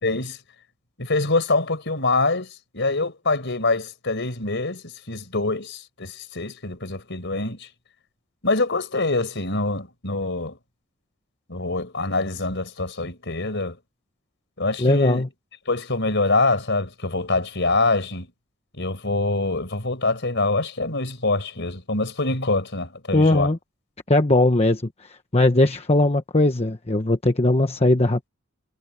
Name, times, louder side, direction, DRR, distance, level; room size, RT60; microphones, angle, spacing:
voice 1, 0.0-0.4 1.0-7.7 8.4-10.6 11.5-13.8 14.6-15.3 15.7-18.3 18.7-23.5, left 3 dB, 55° left, 4.9 m, -25 dB
voice 2, 14.8-15.3 23.1-23.6 24.1-28.3, left 2 dB, 30° left, 1.2 m, -19 dB
head